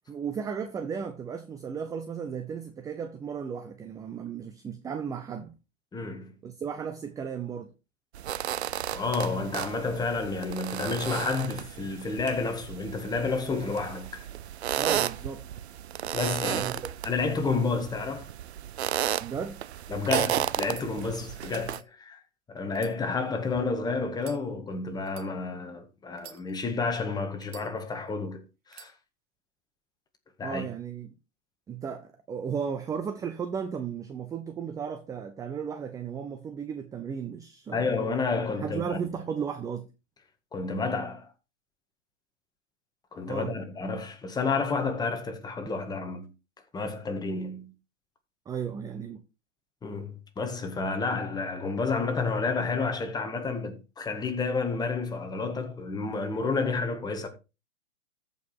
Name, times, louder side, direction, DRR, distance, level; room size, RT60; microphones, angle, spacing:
voice 1, 0.1-5.5 6.4-7.7 14.8-15.4 16.4-16.8 19.2-19.6 30.4-31.1 31.7-37.9 38.6-39.9 43.3-43.5 48.5-49.2, right 7 dB, 10° right, 0.6 m, -35 dB
voice 2, 5.9-6.3 8.9-14.3 16.1-16.6 17.0-18.3 19.9-22.2 22.5-28.4 28.7-28.9 30.4-30.7 37.7-39.0 40.5-41.3 43.1-46.3 46.7-47.7 49.8-57.3, left 4 dB, 10° left, 1.8 m, -30 dB
sound 1, 8.1-21.8, right 11 dB, 60° right, 0.6 m, -33 dB
sound 2, 20.7-20.9 21.6-21.9 22.7-23.6 24.2-24.4 25.1-25.3 26.1-26.8 27.4-28.1 28.7-28.9, right 9 dB, 25° right, 1.6 m, -49 dB
14.0 x 5.5 x 4.5 m
figure-of-eight pair, 115°, 36 cm